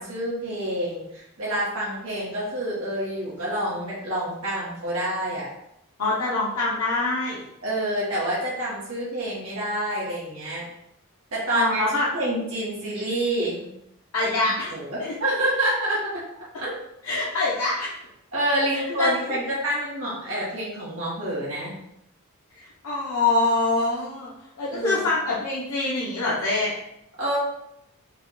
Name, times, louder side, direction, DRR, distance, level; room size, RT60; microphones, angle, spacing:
voice 1, 0.0-5.5 7.6-10.6 11.3-13.7 14.4-16.2 16.6-16.7 18.3-21.7 24.7-25.1 27.2-27.4, right 1 dB, 65° right, -7 dB, 1.3 m, -28 dB
voice 2, 6.0-7.4 11.5-12.1 14.1-15.1 17.0-17.9 18.7-19.1 22.5-24.3 24.6-26.7, left 2 dB, 90° left, -7 dB, 0.9 m, -25 dB
4.7 x 2.3 x 3.8 m, 0.80 s
head